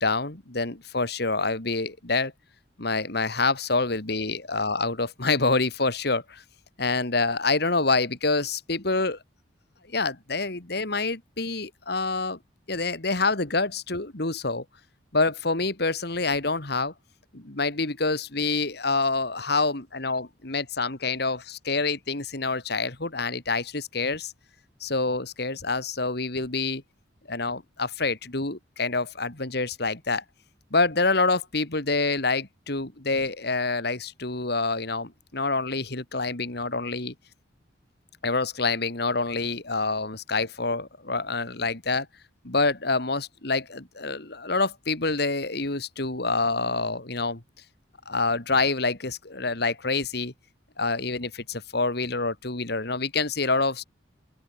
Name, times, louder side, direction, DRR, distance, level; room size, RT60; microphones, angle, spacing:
voice 1, 0.0-2.3 2.8-6.4 6.8-9.2 9.9-12.4 12.7-14.6 15.1-16.9 17.3-24.3 24.8-26.8 27.3-30.2 30.7-37.1 38.2-42.1 42.4-47.4 48.1-50.3 50.8-53.8, left 3 dB, 55° left, 2.4 m, -27 dB
open air
head